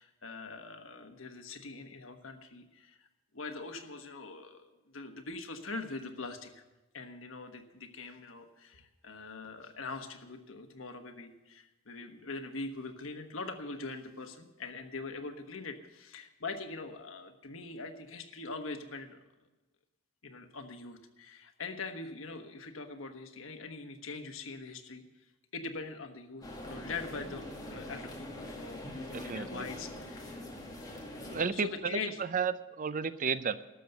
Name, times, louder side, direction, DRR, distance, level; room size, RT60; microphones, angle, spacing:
voice 1, 0.0-3.1 3.3-6.6 6.9-19.2 20.2-25.0 25.5-30.3 31.5-32.2, left 3 dB, 85° left, 6 dB, 1.3 m, -43 dB
sound 1, 26.4-31.4, left 1 dB, 20° left, 2.0 m, -43 dB
voice 2, 29.1-29.6 31.2-33.7, right 5 dB, 40° right, 14 dB, 0.5 m, -33 dB
12.5 x 6.8 x 9.1 m, 1.1 s
head